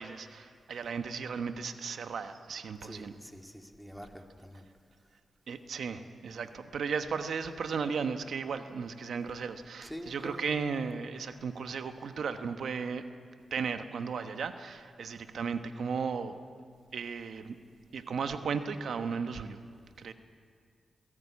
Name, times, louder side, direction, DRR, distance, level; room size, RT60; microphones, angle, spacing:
voice 1, 0.0-3.1 5.5-13.1 13.5-16.4 16.9-17.6 17.9-19.6 20.0-20.1, right 5 dB, 75° right, 9 dB, 1.1 m, -35 dB
voice 2, 2.8-4.6 9.8-10.5, equal, ahead, 3 dB, 2.4 m, -45 dB
21.5 x 16.0 x 8.5 m, 2.2 s
cardioid pair, 55°, 0 cm